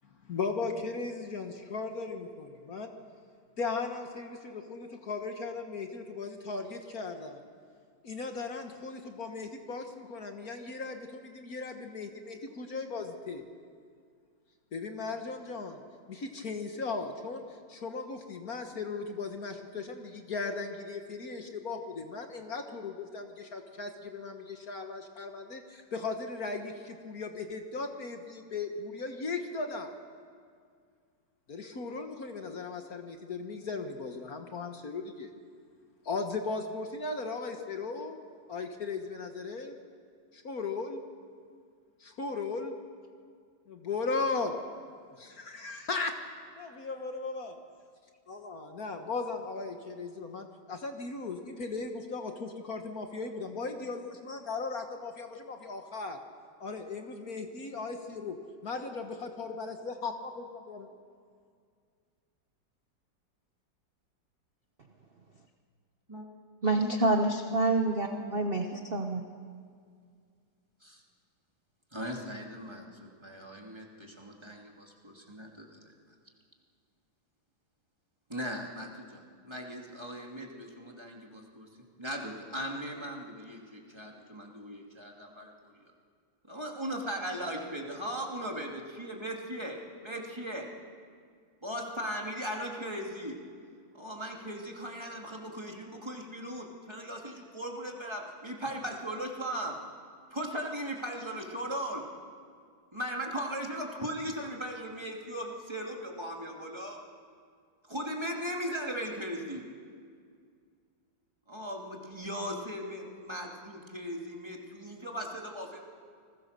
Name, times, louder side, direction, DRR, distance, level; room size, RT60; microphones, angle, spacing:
voice 1, 0.3-2.9 3.6-7.4 8.0-13.4 14.7-15.8 16.1-17.4 17.7-29.9 31.5-35.3 36.1-38.2 38.5-39.7 40.3-41.0 42.2-42.7 43.7-44.5 45.2-46.1 46.6-47.5 48.3-56.2 56.6-58.4 58.6-60.9, left 4 dB, 50° left, 5 dB, 1.8 m, -37 dB
voice 2, 66.6-69.2, right 2 dB, 35° right, 4 dB, 1.1 m, -27 dB
voice 3, 68.1-69.0 70.8-71.0 71.9-75.9 78.3-81.7 82.0-85.7 86.5-90.7 91.6-93.4 93.9-99.8 100.3-102.0 102.9-107.0 107.9-109.7 111.5-115.8, equal, 15° right, 0 dB, 2.7 m, -38 dB
29.0 x 21.0 x 6.8 m, 2.1 s
omnidirectional pair, 2.1 m